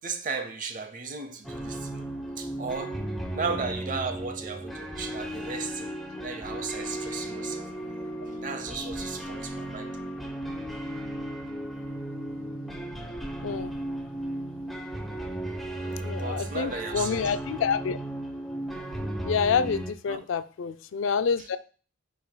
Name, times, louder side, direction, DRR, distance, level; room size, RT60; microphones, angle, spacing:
voice 1, 0.0-2.0 2.4-3.0 3.3-5.9 6.2-7.7 8.4-9.9 15.7-17.2 20.1-20.2, right 4 dB, 45° right, 0.8 m, -35 dB
sound 1, 1.4-19.9, right 1 dB, ahead, 0.9 m, -35 dB
voice 2, 16.0-18.0 19.2-21.6, left 6 dB, 80° left, 0.4 m, -27 dB
10.0 x 4.7 x 2.2 m
head